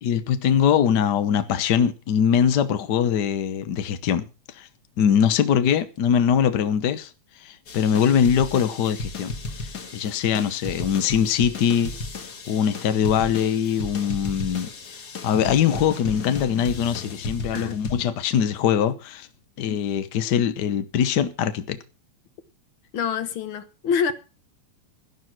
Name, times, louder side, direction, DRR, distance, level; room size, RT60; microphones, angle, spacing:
voice 1, 0.0-4.3 4.5-4.7 5.0-7.1 7.4-9.4 9.9-11.9 12.5-14.7 15.2-19.3 19.6-21.8, left 8 dB, 80° left, 0.9 m, -22 dB
sound 1, 7.7-18.1, left 3 dB, 40° left, 1.7 m, -35 dB
voice 2, 22.9-24.1, left 6 dB, 55° left, 1.6 m, -26 dB
12.0 x 11.0 x 6.1 m
omnidirectional pair, 3.3 m